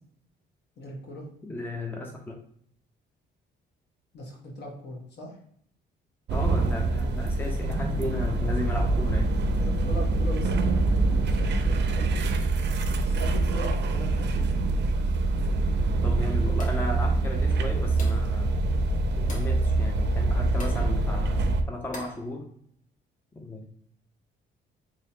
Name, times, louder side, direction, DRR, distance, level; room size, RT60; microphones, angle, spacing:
voice 1, 0.8-1.3 4.1-5.4 9.6-12.1 13.0-14.5, equal, 60° left, 0 dB, 1.3 m, -39 dB
voice 2, 1.4-2.4 6.3-9.4 16.0-18.6 19.2-22.5 23.3-23.7, left 1 dB, 10° left, 2 dB, 0.5 m, -35 dB
sound 1, 6.3-21.6, right 2 dB, 60° right, 0.5 m, -25 dB
sound 2, 16.6-17.0 18.0-18.3 19.3-19.6 20.6-20.9 21.9-22.3, left 1 dB, 40° left, 1.2 m, -42 dB
3.9 x 3.1 x 2.8 m, 0.66 s
cardioid pair, 90°, 20 cm